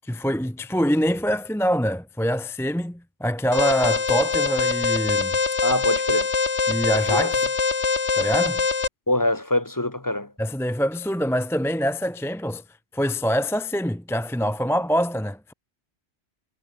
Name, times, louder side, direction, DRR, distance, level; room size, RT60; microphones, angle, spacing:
voice 1, 0.0-5.4 6.7-7.5 8.2-8.6 10.4-12.6 12.9-15.5, equal, 5° left, 0.6 m, -25 dB
Alarm, 3.5-8.9, left 4 dB, 80° left, 2.3 m, -23 dB
voice 2, 5.6-6.3 7.1-7.3 9.1-10.3, left 1 dB, 20° left, 1.0 m, -24 dB
omnidirectional pair, 1.1 m